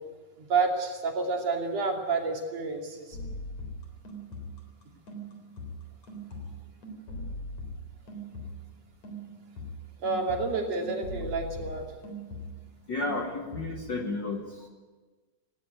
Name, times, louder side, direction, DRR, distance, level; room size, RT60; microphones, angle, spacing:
voice 1, 0.4-3.2 10.0-11.8, right 4 dB, 60° right, 1 dB, 3.9 m, -29 dB
sound 1, 3.1-8.8 9.0-12.8 13.0-14.1, equal, 60° left, 5.0 m, -41 dB
voice 2, 12.9-14.7, left 3 dB, 45° left, 2 dB, 1.9 m, -32 dB
18.5 x 17.0 x 9.4 m, 1.3 s
omnidirectional pair, 3.4 m